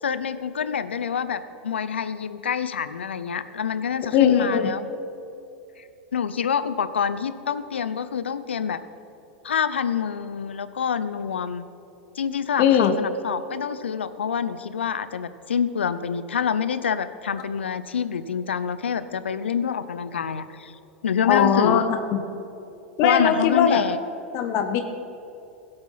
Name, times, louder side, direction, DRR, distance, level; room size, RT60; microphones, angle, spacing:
voice 1, 0.0-4.8 5.8-5.9 6.1-8.8 9.4-11.6 12.2-20.7 21.0-21.9 23.0-24.0, left 7 dB, 85° left, 13 dB, 0.6 m, -26 dB
voice 2, 4.1-4.7 12.6-12.9 21.2-22.2 23.0-23.8 24.3-24.8, left 8 dB, 50° left, 7 dB, 1.1 m, -20 dB
16.5 x 7.9 x 5.6 m, 2.9 s
hypercardioid pair, 95°, 6 cm